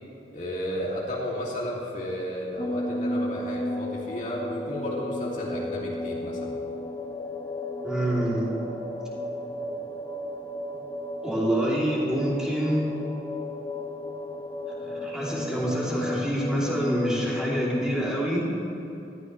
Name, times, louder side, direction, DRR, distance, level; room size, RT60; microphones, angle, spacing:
voice 1, 0.3-6.6, equal, 45° left, -4 dB, 2.4 m, -33 dB
sound 1, 2.6-18.0, left 1 dB, 25° left, 0.8 m, -33 dB
voice 2, 7.8-8.6 11.2-12.9 14.8-18.5, right 1 dB, 5° right, -7 dB, 2.9 m, -27 dB
20.0 x 14.0 x 3.2 m, 2.9 s
head